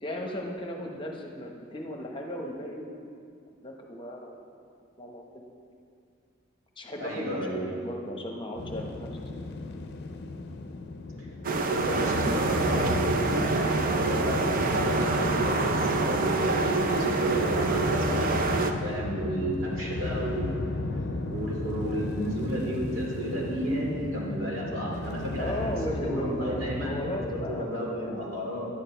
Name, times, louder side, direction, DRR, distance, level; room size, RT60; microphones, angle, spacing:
voice 1, 0.0-3.0 3.6-4.4 5.0-5.4 6.8-9.5 25.3-28.2, equal, 25° left, 1 dB, 0.9 m, -36 dB
voice 2, 7.0-7.7 11.7-18.3 18.8-20.7 21.3-25.5 26.0-28.7, equal, 80° right, -4 dB, 2.7 m, -32 dB
sound 1, 8.6-27.6, left 2 dB, 55° left, 0.6 m, -34 dB
sound 2, 11.4-18.7, right 3 dB, 45° right, 0.6 m, -26 dB
10.5 x 9.0 x 4.5 m, 2.3 s
head